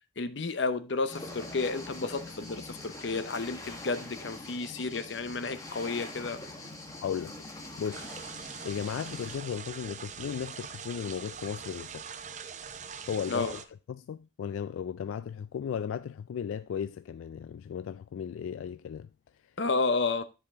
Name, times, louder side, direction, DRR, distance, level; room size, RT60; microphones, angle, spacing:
voice 1, 0.2-6.4 13.3-13.5 19.6-20.2, left 3 dB, 65° left, 0.7 m, -31 dB
sound 1, 1.1-9.4, left 2 dB, 15° left, 1.2 m, -44 dB
voice 2, 7.0-7.4 7.8-8.1 8.6-12.0 13.1-13.6 13.9-19.1, left 7 dB, 90° left, 0.3 m, -35 dB
sound 2, 7.9-13.7, right 6 dB, 35° right, 0.5 m, -43 dB
9.9 x 5.1 x 3.5 m
head